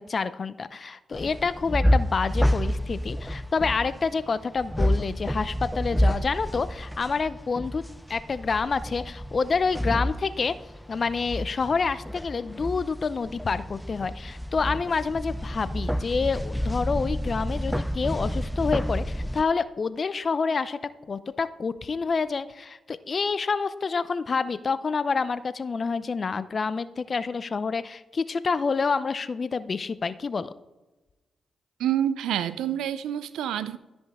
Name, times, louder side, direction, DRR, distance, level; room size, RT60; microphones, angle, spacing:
voice 1, 0.0-10.6 10.9-20.8 21.1-30.5, left 4 dB, 50° left, 15 dB, 0.6 m, -28 dB
sound 1, 1.1-19.4, equal, 5° left, 0.3 m, -29 dB
voice 2, 31.8-33.8, right 10 dB, 85° right, 14 dB, 0.5 m, -27 dB
13.0 x 5.5 x 3.6 m, 1.1 s
supercardioid pair, 45°, 0 cm